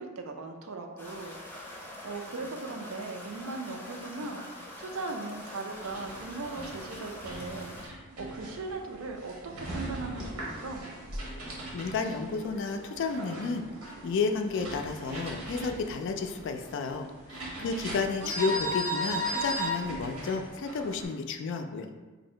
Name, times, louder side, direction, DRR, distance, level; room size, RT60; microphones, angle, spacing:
voice 1, 0.0-4.4 4.8-7.7 8.2-10.9 17.6-18.3, right 3 dB, 75° right, 4 dB, 0.4 m, -39 dB
sound 1, 1.0-7.9, left 1 dB, 10° left, 0.7 m, -44 dB
sound 2, 5.7-21.1, equal, 90° right, 1.1 m, -38 dB
voice 2, 11.7-13.7 14.0-21.9, left 4 dB, 60° left, 6 dB, 0.3 m, -32 dB
2.8 x 2.6 x 4.2 m, 1.3 s
head